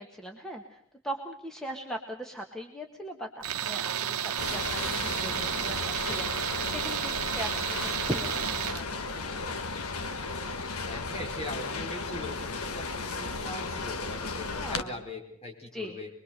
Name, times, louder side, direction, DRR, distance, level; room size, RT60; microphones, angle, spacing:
voice 1, 0.0-9.4 14.5-15.0 15.7-16.0, equal, 5° left, 2 dB, 1.6 m, -40 dB
Tools, 3.4-8.8, right 9 dB, 90° right, 1.0 m, -32 dB
sound 1, 4.4-14.8, left 3 dB, 85° left, 1.4 m, -35 dB
voice 2, 10.1-10.4 10.9-16.1, left 1 dB, 30° left, 1 dB, 5.4 m, -41 dB
24.5 x 22.0 x 6.8 m, 0.70 s
head